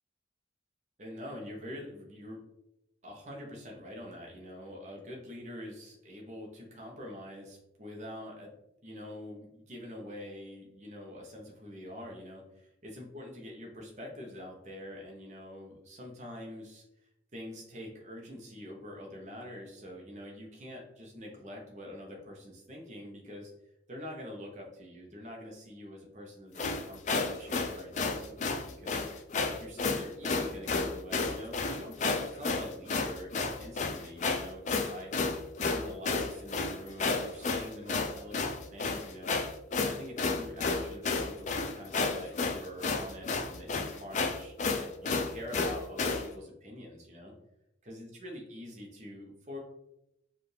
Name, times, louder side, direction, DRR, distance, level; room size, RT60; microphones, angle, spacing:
voice 1, 1.0-2.4 3.0-8.5 8.8-23.5 23.9-29.1 29.5-35.1 35.6-39.4 39.8-47.3 47.9-49.6, left 1 dB, 40° right, -1 dB, 0.8 m, -45 dB
sound 1, 26.6-46.3, left 4 dB, 40° left, 0.4 m, -31 dB
4.9 x 2.5 x 3.2 m, 0.84 s
head